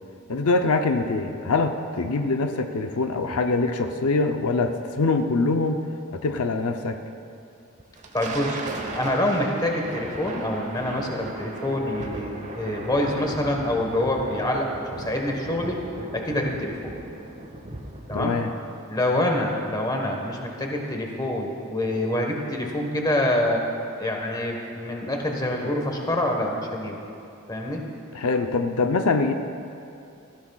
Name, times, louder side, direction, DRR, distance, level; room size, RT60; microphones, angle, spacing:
voice 1, 0.3-5.8 6.1-7.0 18.1-18.5 28.1-29.3, left 3 dB, 80° left, 6 dB, 0.6 m, -24 dB
Thunder, 7.8-18.6, right 2 dB, 35° right, 1.0 m, -37 dB
voice 2, 8.1-8.6 9.0-15.8 16.1-16.9 18.1-18.4 18.9-23.7 24.0-27.0 27.5-27.8, left 1 dB, 20° left, 1 dB, 1.3 m, -26 dB
18.5 x 14.5 x 2.4 m, 2.6 s
head